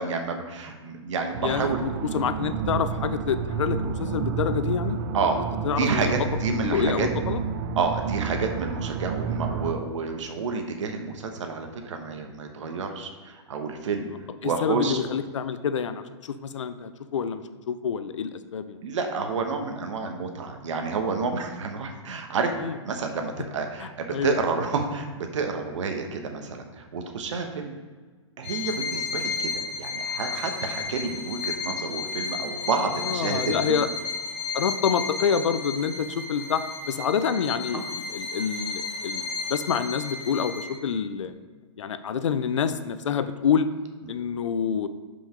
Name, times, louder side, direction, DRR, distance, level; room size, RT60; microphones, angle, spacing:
voice 1, 0.0-1.8 5.1-7.1 7.8-14.1 14.4-15.0 18.8-22.5 22.8-27.8 28.4-33.8 37.7-37.8, right 4 dB, 80° right, 4 dB, 1.1 m, -29 dB
sound 1, 1.3-9.7, right 6 dB, 55° right, 0.6 m, -30 dB
voice 2, 1.4-5.0 5.4-6.1 6.6-7.4 14.4-18.8 22.6-22.7 24.1-24.4 33.0-33.9 34.5-41.3 41.8-43.7 44.1-44.9, left 7 dB, 85° left, 12 dB, 0.6 m, -27 dB
Bowed string instrument, 28.4-40.9, left 5 dB, 55° left, 1.3 m, -33 dB
5.8 x 5.1 x 5.0 m, 1.4 s
hypercardioid pair, 140°, 15 cm